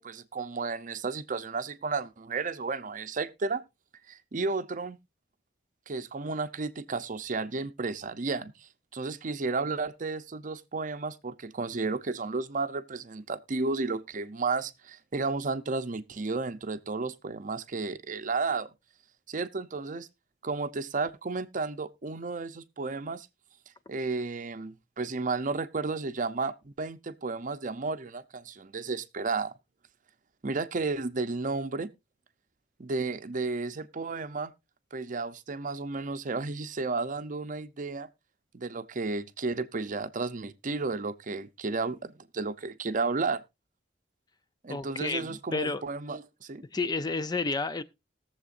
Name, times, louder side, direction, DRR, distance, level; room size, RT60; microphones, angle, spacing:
voice 1, 0.0-3.7 4.1-5.0 5.9-18.7 19.3-20.1 20.4-23.3 23.9-29.5 30.4-31.9 32.8-34.5 34.9-38.1 38.5-43.4 44.6-46.6, right 3 dB, 45° right, 0.7 m, -33 dB
voice 2, 44.7-45.8 46.7-47.8, left 3 dB, 25° left, 0.5 m, -31 dB
20.5 x 7.3 x 2.5 m
head